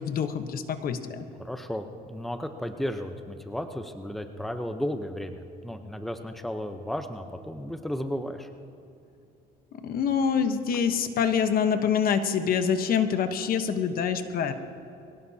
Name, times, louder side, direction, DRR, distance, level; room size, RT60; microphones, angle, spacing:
voice 1, 0.0-1.2 9.8-14.5, left 7 dB, 60° left, 8 dB, 1.1 m, -26 dB
voice 2, 1.4-8.5, equal, ahead, 6 dB, 0.9 m, -34 dB
23.5 x 17.5 x 2.9 m, 2.8 s
cardioid pair, 110°, 17 cm